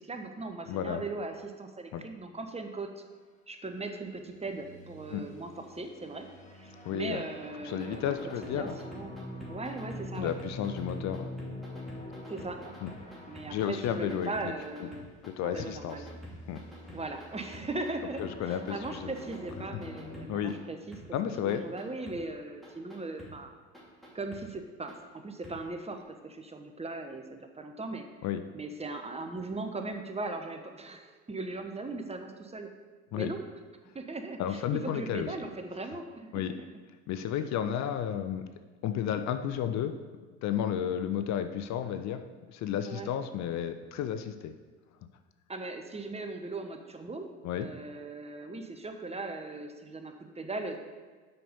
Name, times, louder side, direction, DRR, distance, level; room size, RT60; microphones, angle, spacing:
voice 1, 0.0-3.0 3.5-6.3 6.5-9.1 9.5-10.3 12.3-12.6 13.3-15.1 15.4-16.1 16.9-21.0 21.4-23.5 24.1-28.1 28.5-32.7 33.1-33.4 33.9-36.3 36.6-36.7 42.9-43.1 45.5-50.8, right 3 dB, 20° right, 6 dB, 1.1 m, -39 dB
voice 2, 0.7-1.0 1.9-2.0 5.1-5.2 6.8-7.2 7.6-8.8 10.2-11.3 12.8-12.9 13.5-14.3 15.2-16.0 16.5-16.6 18.2-19.1 20.3-20.5 21.1-21.6 28.2-28.4 33.1-33.3 34.4-35.3 36.3-36.6 37.1-38.5 38.8-39.9 40.4-42.2 42.5-44.5 47.4-47.7, left 9 dB, 50° left, 9 dB, 0.7 m, -32 dB
sound 1, 4.2-14.5 15.4-20.2, left 1 dB, 20° left, 2.1 m, -45 dB
sound 2, 7.7-15.3 15.6-17.9 18.2-20.5 20.9-21.0 21.5-22.2 22.6-23.3 23.7-24.4 24.9-25.0 25.4-25.5 26.0-26.1, left 1 dB, ahead, 2.9 m, -49 dB
7.8 x 6.0 x 5.3 m, 1.4 s
hypercardioid pair, 65°, 35 cm